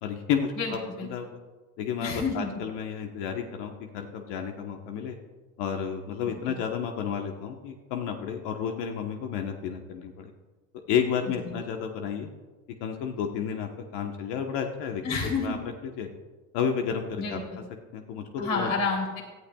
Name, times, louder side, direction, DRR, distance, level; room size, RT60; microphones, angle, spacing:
voice 1, 0.0-0.8 1.1-1.3 1.8-5.2 5.6-10.3 10.9-12.3 12.8-15.0 15.4-15.6 15.8-16.1 16.5-17.4 17.9-18.7, left 7 dB, 55° left, 4 dB, 1.2 m, -31 dB
voice 2, 0.6-1.1 2.0-2.5 6.5-6.6 11.4-11.5 15.0-15.6 17.2-17.6 18.4-19.2, left 4 dB, 40° left, 1 dB, 3.3 m, -29 dB
17.5 x 12.0 x 2.3 m, 1.3 s
supercardioid pair, 120°, 49 cm